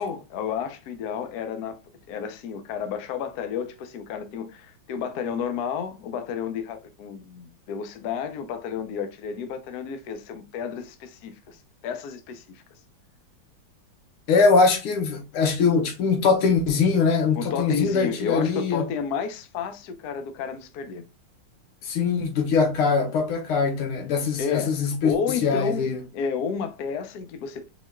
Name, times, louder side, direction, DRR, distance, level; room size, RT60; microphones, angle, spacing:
voice 1, 0.0-1.8 2.1-11.6 11.8-12.6 17.3-21.0 24.4-27.7, left 7 dB, 65° left, 1.0 m, -31 dB
voice 2, 14.3-18.9 21.8-25.2 25.4-26.0, left 4 dB, 90° left, 1.9 m, -22 dB
4.8 x 4.0 x 2.2 m
omnidirectional pair, 2.3 m